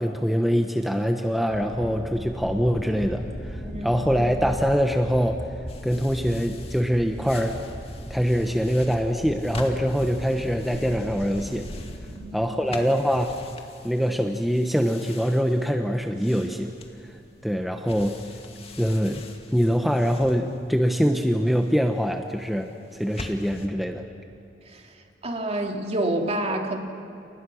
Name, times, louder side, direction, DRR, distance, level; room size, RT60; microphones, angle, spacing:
voice 1, 0.0-5.4 5.8-7.6 8.1-11.7 12.3-13.3 13.8-16.7 17.4-18.2 18.8-19.2 19.5-24.0, equal, ahead, 4 dB, 1.1 m, -24 dB
sound 1, 1.5-12.0, equal, 85° left, 5.4 m, -38 dB
voice 2, 3.6-4.0 12.1-12.5 24.7-24.8 25.2-26.8, right 1 dB, 35° right, 2 dB, 3.0 m, -28 dB
sound 2, 5.7-23.7, left 2 dB, 35° left, 2.4 m, -44 dB
30.0 x 30.0 x 6.4 m, 2.8 s
head